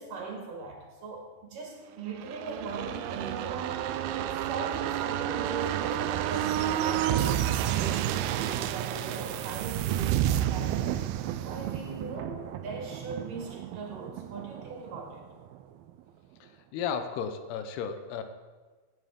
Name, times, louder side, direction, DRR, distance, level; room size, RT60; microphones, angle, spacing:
voice 1, 0.0-3.9 4.1-7.4 7.6-11.0 11.4-15.2, right 4 dB, 60° right, 0 dB, 3.4 m, -39 dB
sound 1, 2.1-15.6 15.9-16.0, right 11 dB, 80° right, 2.3 m, -31 dB
voice 2, 16.4-18.2, left 7 dB, 85° left, 9 dB, 2.9 m, -34 dB
17.5 x 9.1 x 3.7 m, 1.4 s
omnidirectional pair, 4.6 m